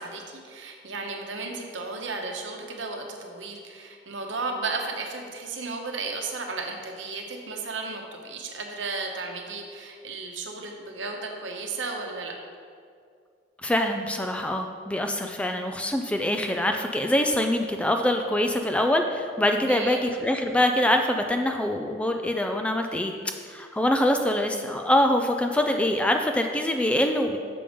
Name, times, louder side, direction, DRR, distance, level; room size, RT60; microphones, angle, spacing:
voice 1, 0.0-12.3 19.7-20.1, right 3 dB, 85° right, 2 dB, 1.0 m, -34 dB
voice 2, 13.6-23.1 23.5-27.4, left 1 dB, 5° left, 4 dB, 0.3 m, -24 dB
6.8 x 5.2 x 5.0 m, 2.2 s
head